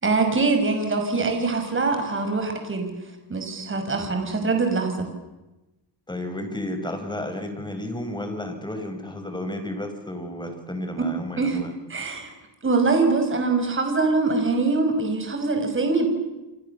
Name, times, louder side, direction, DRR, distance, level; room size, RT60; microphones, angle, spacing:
voice 1, 0.0-2.9 3.3-5.1 11.4-11.6 11.9-12.3 12.6-16.1, right 3 dB, 30° right, 5 dB, 5.8 m, -23 dB
voice 2, 6.1-11.7, left 1 dB, 10° left, 6 dB, 5.8 m, -32 dB
29.0 x 26.0 x 7.2 m, 1.0 s
cardioid pair, 115°, 42 cm